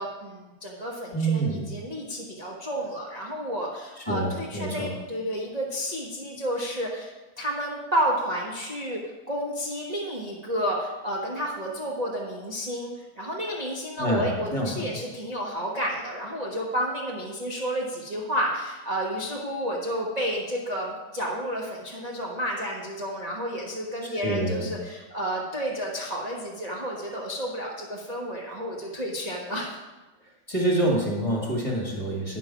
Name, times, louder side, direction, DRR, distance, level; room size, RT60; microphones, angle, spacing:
voice 1, 0.0-29.7, equal, 25° right, -4 dB, 1.0 m, -31 dB
voice 2, 1.1-1.6 4.1-4.9 14.0-14.9 24.2-24.7 30.5-32.4, right 1 dB, 15° left, -3 dB, 1.7 m, -26 dB
9.5 x 6.1 x 6.0 m, 1.1 s
omnidirectional pair, 2.3 m